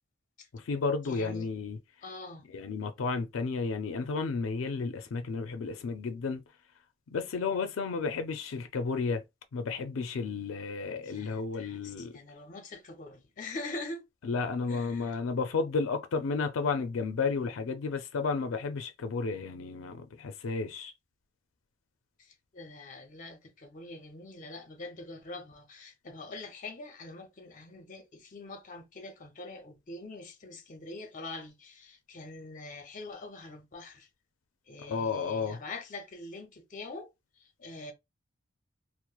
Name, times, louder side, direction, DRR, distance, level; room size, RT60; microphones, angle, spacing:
voice 1, 0.5-1.8 2.5-6.4 7.1-9.2 9.5-12.2 14.2-20.9 34.8-35.6, left 4 dB, 85° left, 0.4 m, -32 dB
voice 2, 1.0-1.5 2.0-2.4 11.0-14.0 14.7-15.2 22.2-34.1 34.7-37.1 37.4-37.9, left 2 dB, 40° left, 0.6 m, -44 dB
3.0 x 2.0 x 2.3 m
head